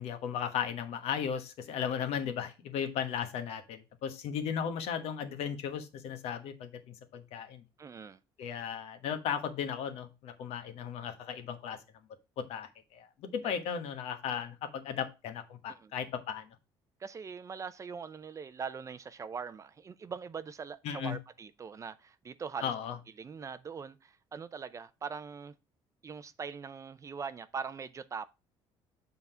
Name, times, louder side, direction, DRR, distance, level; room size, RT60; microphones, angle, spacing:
voice 1, 0.0-6.7 7.1-7.6 8.4-11.8 12.4-16.4 20.8-21.1 22.6-22.9, left 8 dB, 70° left, 1.2 m, -36 dB
voice 2, 7.8-8.2 15.7-15.9 17.0-22.7 23.2-25.5 26.0-28.3, right 6 dB, 30° right, 0.5 m, -42 dB
7.1 x 4.1 x 5.5 m
cardioid pair, 115°, 11 cm